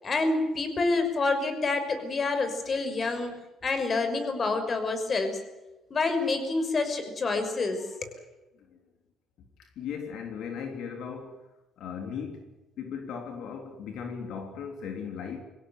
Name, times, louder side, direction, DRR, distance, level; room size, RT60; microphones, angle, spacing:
voice 1, 0.0-5.4 5.9-8.2, left 3 dB, 40° left, 8 dB, 5.8 m, -28 dB
voice 2, 9.4-11.4 11.8-15.4, left 6 dB, 75° left, 4 dB, 3.5 m, -38 dB
25.0 x 17.0 x 9.6 m, 1.1 s
cardioid pair, 95°, 0 cm